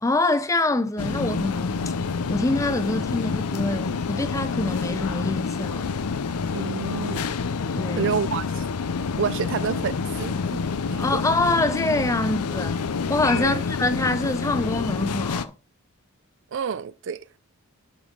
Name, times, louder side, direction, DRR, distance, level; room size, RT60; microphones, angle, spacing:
voice 1, 0.0-1.8 2.3-5.9 7.8-8.1 11.0-12.8 13.1-15.5, left 2 dB, 15° left, 0.5 m, -25 dB
sound 1, 1.0-15.5, left 5 dB, 90° left, 0.5 m, -28 dB
voice 2, 6.5-7.2 8.0-8.6 9.2-11.2 13.4-13.6 16.5-17.4, right 6 dB, 55° right, 0.4 m, -29 dB
8.8 x 5.1 x 3.8 m
head